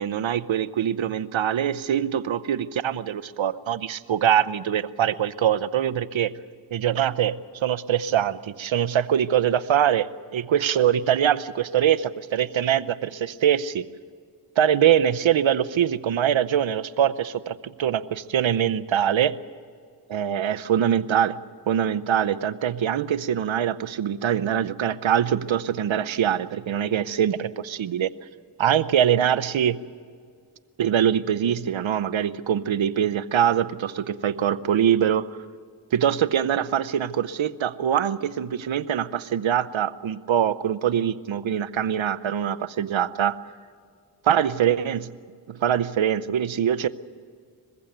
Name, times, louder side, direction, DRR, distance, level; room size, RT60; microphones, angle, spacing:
voice 1, 0.0-6.3 6.7-13.8 14.6-19.3 20.1-21.4 21.7-28.1 28.6-29.8 30.8-35.4 35.9-43.4 44.2-45.1 45.5-46.9, right 9 dB, 80° right, 14 dB, 0.8 m, -23 dB
22.5 x 15.5 x 9.2 m, 2.1 s
cardioid pair, 50°, 46 cm